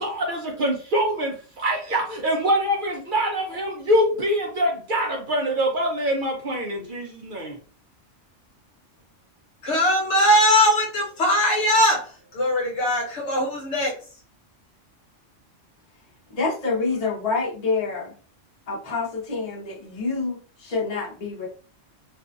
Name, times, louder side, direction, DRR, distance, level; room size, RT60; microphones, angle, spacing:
voice 1, 0.0-7.6, equal, 60° right, 0.6 m, -24 dB
voice 2, 9.6-12.1 12.3-13.9, equal, 70° left, 1.0 m, -20 dB
voice 3, 16.3-18.1 18.7-21.5, left 4 dB, 40° left, 0.7 m, -27 dB
2.5 x 2.3 x 2.4 m
omnidirectional pair, 1.3 m